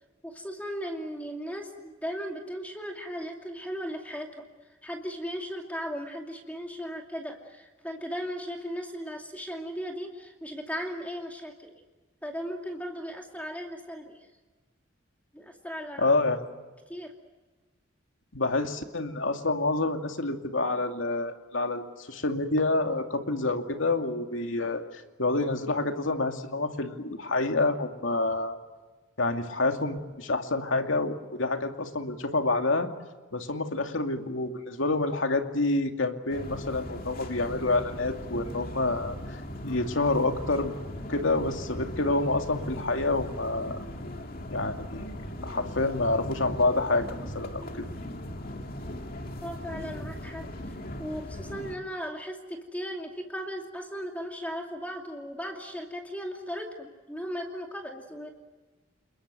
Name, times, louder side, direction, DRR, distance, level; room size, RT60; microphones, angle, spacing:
voice 1, 0.2-11.8 12.2-14.2 15.3-16.1 16.9-17.1 49.4-58.3, equal, 10° left, 2 dB, 2.6 m, -37 dB
voice 2, 16.0-16.4 18.3-28.6 29.2-32.9 33.3-39.1 39.6-40.7 41.1-43.8 44.5-45.1 45.4-47.1 47.3-47.6, left 2 dB, 80° left, 5 dB, 2.5 m, -28 dB
sound 1, 36.3-51.7, left 1 dB, 45° left, 2.4 m, -39 dB
29.5 x 21.5 x 7.7 m, 1.3 s
head